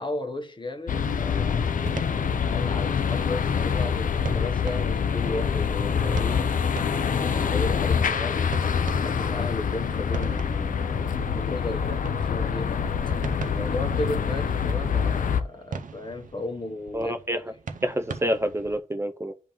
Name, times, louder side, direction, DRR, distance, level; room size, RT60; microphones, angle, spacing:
voice 1, 0.0-1.7 2.5-6.6 7.1-12.9 13.4-17.4, left 1 dB, 35° left, 0.9 m, -35 dB
sound 1, 0.9-15.4, left 6 dB, 80° left, 0.4 m, -25 dB
sound 2, 1.9-18.8, right 5 dB, 75° right, 0.6 m, -41 dB
voice 2, 16.9-17.4 17.8-19.3, equal, 20° right, 0.4 m, -27 dB
10.5 x 3.6 x 3.0 m
wide cardioid pair, 70°, 14 cm